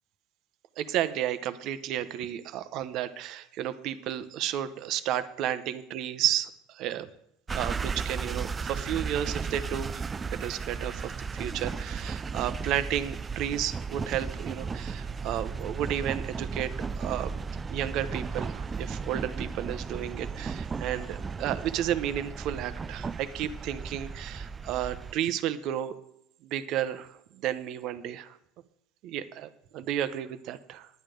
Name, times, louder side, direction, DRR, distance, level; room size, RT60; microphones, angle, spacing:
voice 1, 0.8-7.1 7.5-10.0 10.3-17.3 17.7-25.9 26.4-28.4 29.0-30.9, right 11 dB, 55° right, 12 dB, 0.8 m, -32 dB
sound 1, 7.5-25.1, right 5 dB, 20° right, 0.3 m, -35 dB
10.5 x 9.2 x 5.1 m, 0.77 s
supercardioid pair, 125°, 0 cm